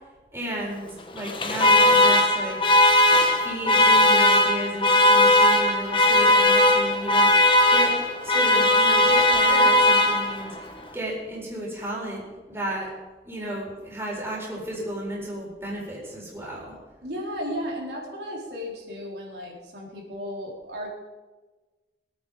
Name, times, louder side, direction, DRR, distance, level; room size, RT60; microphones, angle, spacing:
voice 1, 0.3-2.6 3.4-7.9 8.2-12.9 13.2-16.7, right 1 dB, 15° right, -4 dB, 4.2 m, -33 dB
Alarm, 1.2-10.6, left 1 dB, 30° left, 1.2 m, -18 dB
voice 2, 17.0-20.9, equal, 75° right, -2 dB, 4.1 m, -34 dB
23.0 x 9.1 x 5.0 m, 1.2 s
head